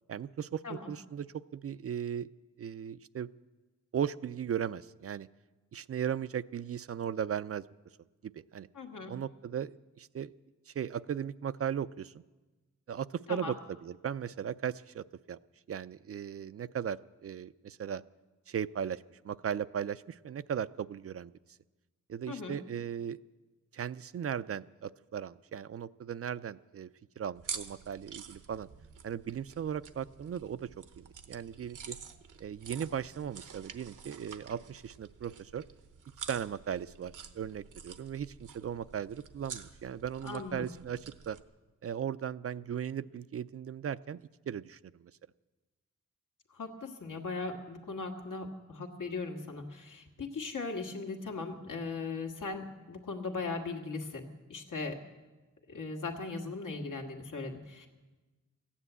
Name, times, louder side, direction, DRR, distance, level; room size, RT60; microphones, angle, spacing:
voice 1, 0.1-0.6 0.9-2.3 2.6-3.3 3.9-5.3 5.7-7.6 8.2-8.7 9.1-10.3 10.7-12.1 12.9-13.6 13.8-15.4 15.7-18.0 18.5-21.3 22.1-23.2 23.7-26.9 27.2-28.7 29.0-32.0 32.4-35.6 36.3-41.4 41.8-45.1, right 8 dB, 50° right, 15 dB, 0.4 m, -37 dB
voice 2, 8.7-9.1 13.3-13.5 22.3-22.6 40.2-40.6 46.5-55.0 55.7-57.9, left 3 dB, 80° left, 2 dB, 1.8 m, -38 dB
sound 1, 27.3-41.4, right 6 dB, 80° right, 0.9 m, -48 dB
15.0 x 10.0 x 8.1 m, 1.2 s
wide cardioid pair, 90°, 31 cm